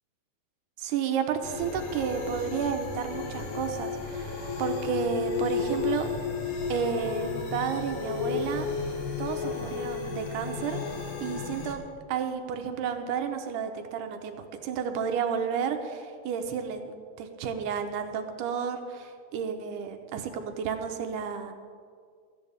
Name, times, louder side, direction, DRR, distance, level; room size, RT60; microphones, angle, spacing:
voice 1, 0.8-6.1 6.7-8.7 9.2-10.8 11.2-21.5, right 7 dB, 80° right, 6 dB, 2.4 m, -32 dB
sound 1, 1.4-11.7, left 5 dB, 50° left, 1.6 m, -33 dB
17.0 x 13.5 x 3.5 m, 2.1 s
omnidirectional pair, 3.7 m